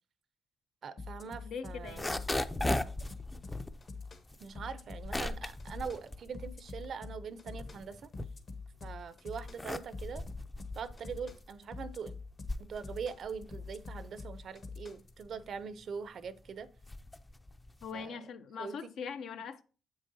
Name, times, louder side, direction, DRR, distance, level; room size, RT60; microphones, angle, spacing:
voice 1, 0.8-2.2 4.4-8.1 8.8-10.2 10.8-12.1 12.6-16.7 17.9-18.2 18.6-18.8, right 6 dB, 60° right, 0.5 m, -42 dB
sound 1, 1.0-15.2, left 4 dB, 50° left, 1.0 m, -45 dB
voice 2, 1.4-2.2 17.8-19.6, left 6 dB, 70° left, 0.5 m, -42 dB
sound 2, 1.7-7.0 7.4-8.8 9.3-18.1, left 1 dB, 15° left, 0.4 m, -39 dB
7.3 x 6.3 x 2.7 m
cardioid pair, 90°, 0 cm